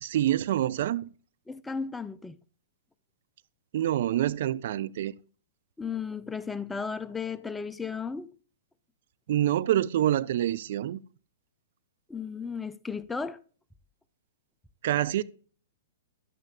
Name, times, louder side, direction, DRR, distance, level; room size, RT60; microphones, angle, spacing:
voice 1, 0.0-1.1 3.7-5.1 9.3-11.0 14.8-15.2, right 12 dB, 60° right, 0.4 m, -26 dB
voice 2, 1.5-2.4 5.8-8.4 12.1-13.4, left 5 dB, 10° left, 0.4 m, -35 dB
10.5 x 8.3 x 2.3 m
hypercardioid pair, 115°, 0 cm